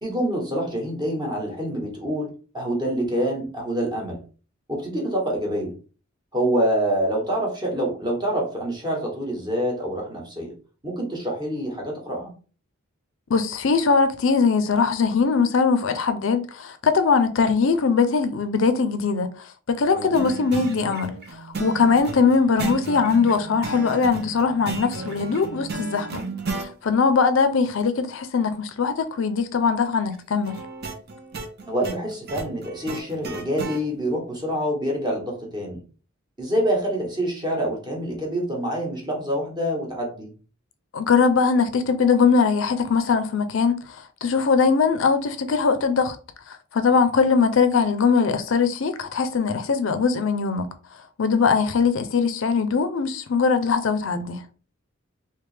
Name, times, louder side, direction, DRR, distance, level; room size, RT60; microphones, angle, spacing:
voice 1, 0.0-4.2 4.7-5.7 6.3-10.5 10.8-12.3 19.9-20.2 21.8-21.9 31.6-35.8 36.4-40.3, right 1 dB, 20° right, 1.2 m, -26 dB
voice 2, 13.3-26.2 26.5-30.6 40.9-46.2 46.5-50.7 51.2-54.4, left 5 dB, 65° left, 0.5 m, -21 dB
sound 1, 20.1-26.7 30.4-33.8, right 4 dB, 50° right, 0.7 m, -33 dB
3.3 x 2.8 x 3.2 m
head